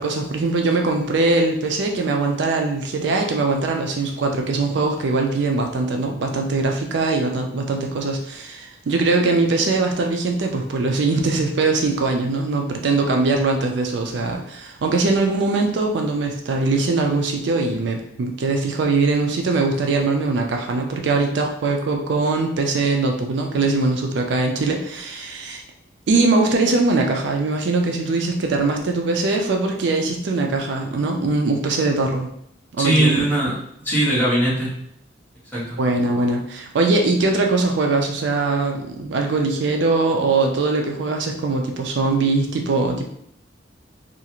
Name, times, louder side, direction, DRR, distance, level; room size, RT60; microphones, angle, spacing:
voice 1, 0.0-25.6 26.1-32.3 32.8-33.1 35.8-43.0, right 3 dB, 65° right, 2 dB, 0.4 m, -21 dB
voice 2, 32.8-34.7 35.5-35.8, right 1 dB, 10° left, -8 dB, 1.0 m, -20 dB
2.5 x 2.4 x 2.9 m, 0.71 s
head